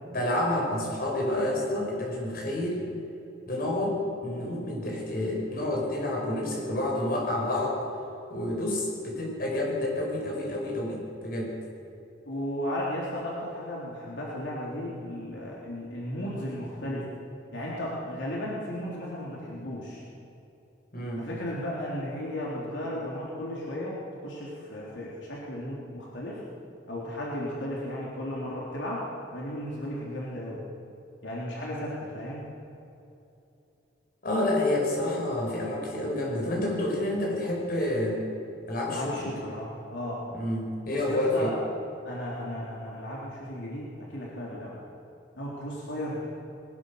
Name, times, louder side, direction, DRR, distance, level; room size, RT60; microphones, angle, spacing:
voice 1, 0.1-2.8 3.5-7.8 8.3-11.6 20.9-21.3 34.2-38.2 38.7-39.3 40.3-41.5, left 1 dB, 55° left, -1 dB, 5.7 m, -29 dB
voice 2, 12.3-17.1 17.5-20.0 21.2-26.4 26.9-29.1 29.3-30.6 31.2-32.4 38.9-40.2 40.9-41.6 42.0-44.8 45.4-46.3, left 1 dB, 80° left, -5 dB, 3.7 m, -35 dB
21.5 x 19.0 x 6.7 m, 2.8 s
head